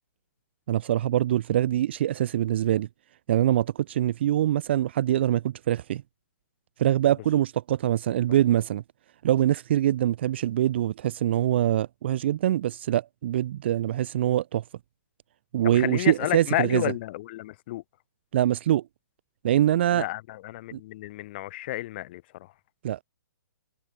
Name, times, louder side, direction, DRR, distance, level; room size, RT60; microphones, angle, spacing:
voice 1, 0.7-2.9 3.3-6.0 6.8-8.8 9.2-14.6 15.5-16.8 18.3-18.8 19.4-20.0 20.7-20.8 22.8-23.0, right 12 dB, 30° right, 0.5 m, -24 dB
voice 2, 15.7-17.8 19.9-22.5, left 17 dB, 30° left, 3.3 m, -31 dB
hypercardioid pair, 170°, 11 cm